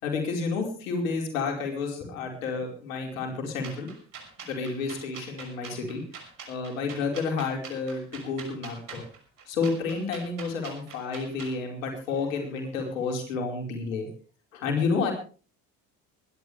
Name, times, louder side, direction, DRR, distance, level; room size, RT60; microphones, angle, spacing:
voice 1, 0.0-3.9 4.4-6.0 6.5-9.0 9.5-14.1 14.5-15.1, left 4 dB, 90° left, 2 dB, 4.9 m, -30 dB
sound 1, 3.6-11.6, right 5 dB, 55° right, 6.1 m, -44 dB
24.5 x 12.0 x 3.4 m, 0.38 s
hypercardioid pair, 60°, 39 cm